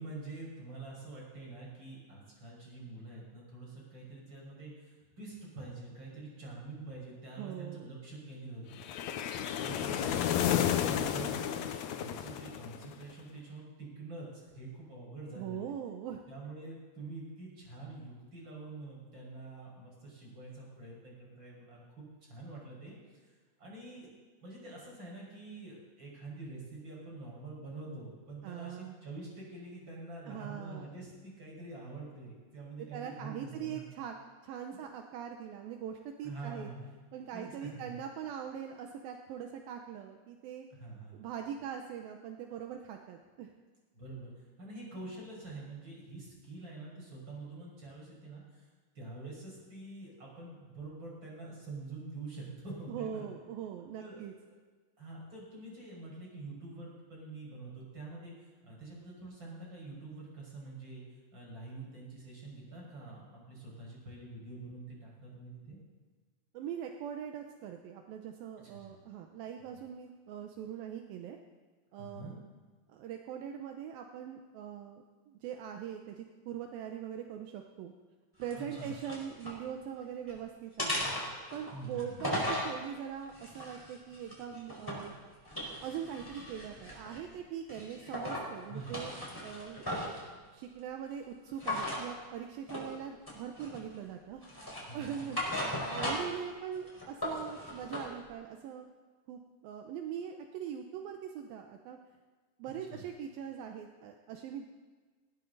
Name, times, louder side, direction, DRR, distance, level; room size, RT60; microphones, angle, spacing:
voice 1, 0.0-11.6 12.0-15.7 16.3-23.0 23.6-24.1 24.4-33.9 36.2-37.0 37.3-38.0 40.7-41.3 43.9-48.7 48.9-53.3 54.0-54.2 55.0-58.3 58.6-61.0 61.3-65.8 68.6-69.0 71.9-72.3 78.6-78.9 81.7-82.2 88.7-89.0 94.9-95.3 95.9-96.1 102.9-103.0, right 2 dB, 30° right, -3 dB, 6.0 m, -46 dB
voice 2, 7.4-7.9 15.4-16.2 28.4-29.0 30.2-30.9 32.9-34.1 34.4-36.7 37.1-40.7 41.1-43.5 52.9-54.3 66.5-71.4 71.9-72.4 72.9-77.9 78.4-81.0 81.5-85.1 85.8-89.1 89.4-89.8 90.5-95.4 95.9-98.9 99.3-102.0 102.6-104.7, right 8 dB, 80° right, 4 dB, 2.6 m, -42 dB
sound 1, 8.8-13.0, left 10 dB, 85° left, 1.6 m, -32 dB
sound 2, 78.4-79.6 80.0-80.4 80.8-82.7 83.3-85.1 85.4-87.3 87.7-88.5 88.8-90.2 91.6-92.0 92.7-92.9 93.3-94.0 94.4-96.4 96.7-98.1, left 1 dB, 5° left, 4.4 m, -37 dB
19.5 x 17.5 x 4.0 m, 1.4 s
omnidirectional pair, 4.2 m